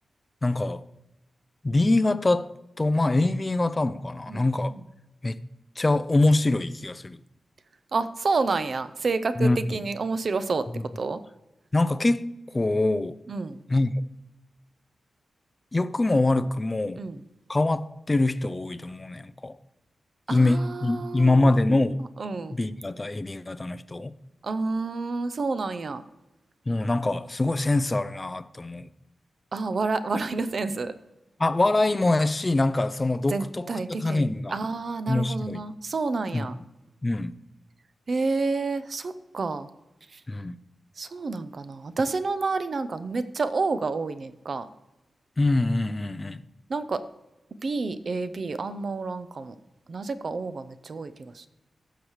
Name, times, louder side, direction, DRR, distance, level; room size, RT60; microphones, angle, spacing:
voice 1, 0.4-0.8 1.6-4.8 5.2-5.4 5.8-7.2 9.4-9.6 11.7-13.2 13.7-13.9 15.7-17.0 17.5-19.6 20.3-22.0 22.5-24.1 26.7-28.9 31.4-33.7 34.0-34.6 35.1-35.6 36.3-36.5 37.0-37.4 40.3-40.6 45.4-46.4, left 2 dB, 20° left, 0.4 m, -24 dB
voice 2, 4.3-4.8 7.9-10.7 11.0-11.2 13.3-13.6 17.0-17.2 20.3-21.9 22.2-22.6 24.4-26.0 29.5-30.9 33.3-36.5 38.1-39.7 40.1-40.2 41.0-44.7 46.7-47.0 47.6-49.6 49.9-51.5, right 3 dB, 45° right, 0.5 m, -29 dB
15.0 x 6.5 x 3.1 m
wide cardioid pair, 155°, 0 cm